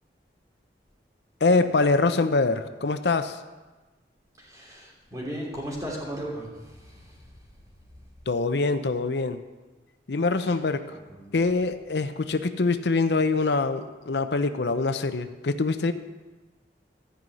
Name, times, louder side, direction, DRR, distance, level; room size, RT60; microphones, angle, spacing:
voice 1, 1.4-3.4 8.3-9.4 10.1-10.9 11.3-15.9, left 3 dB, 75° left, 10 dB, 0.6 m, -24 dB
voice 2, 4.4-7.3 10.4-10.6 10.9-11.4, equal, 20° right, -3 dB, 3.1 m, -37 dB
14.0 x 5.5 x 9.1 m, 1.2 s
head